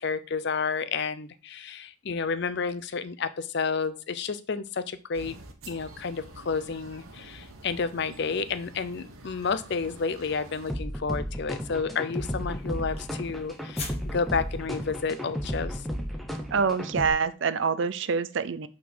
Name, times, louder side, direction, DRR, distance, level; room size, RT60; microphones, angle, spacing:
voice 1, 0.0-5.4 5.7-15.8, left 5 dB, 55° left, 13 dB, 0.5 m, -31 dB
sound 1, 5.1-10.7, right 2 dB, 80° right, 1.1 m, -47 dB
sound 2, 10.7-17.1, equal, ahead, 0.7 m, -34 dB
sound 3, 12.0-15.5, left 4 dB, 30° left, 1.5 m, -46 dB
voice 2, 16.5-18.7, right 5 dB, 60° right, 15 dB, 0.5 m, -26 dB
5.9 x 3.7 x 6.1 m, 0.35 s
head